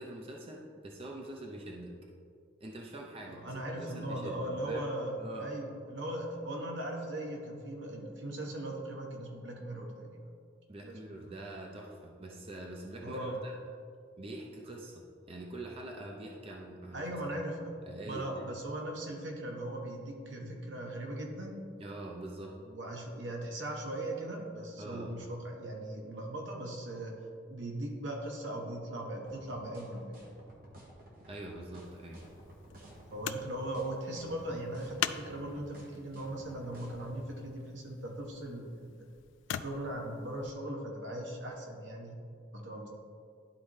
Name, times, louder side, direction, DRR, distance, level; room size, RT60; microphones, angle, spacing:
voice 1, 0.0-1.9 2.6-4.9 5.2-5.5 10.7-13.5 14.2-17.2 17.9-18.5 21.8-22.6 24.8-25.1 31.3-32.2, right 1 dB, 30° right, -1 dB, 0.6 m, -44 dB
voice 2, 3.3-10.3 10.8-11.1 13.0-13.4 16.9-17.7 18.0-21.6 22.6-27.1 27.5-30.3 33.1-39.1 39.6-42.2 42.5-42.9, right 1 dB, 75° right, 0 dB, 1.2 m, -39 dB
sound 1, 29.2-37.2, right 1 dB, 50° right, 1.4 m, -53 dB
sound 2, 31.8-40.5 41.5-41.6, left 9 dB, 80° left, 0.3 m, -44 dB
11.5 x 4.2 x 3.2 m, 2.3 s
head